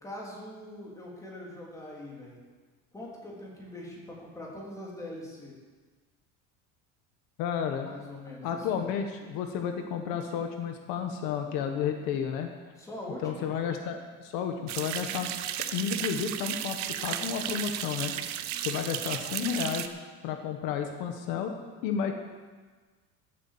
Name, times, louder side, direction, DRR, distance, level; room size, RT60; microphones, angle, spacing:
voice 1, 0.0-2.4 2.9-5.5 7.8-8.8 12.7-13.5, left 1 dB, 10° left, -4 dB, 3.2 m, -42 dB
voice 2, 7.4-7.9 8.4-12.5 13.2-15.3 15.7-19.9 20.2-21.5 21.8-22.1, left 7 dB, 70° left, 5 dB, 1.5 m, -32 dB
sound 1, 14.7-19.9, right 11 dB, 50° right, 0.9 m, -34 dB
14.5 x 8.5 x 7.4 m, 1.4 s
cardioid pair, 160°, 36 cm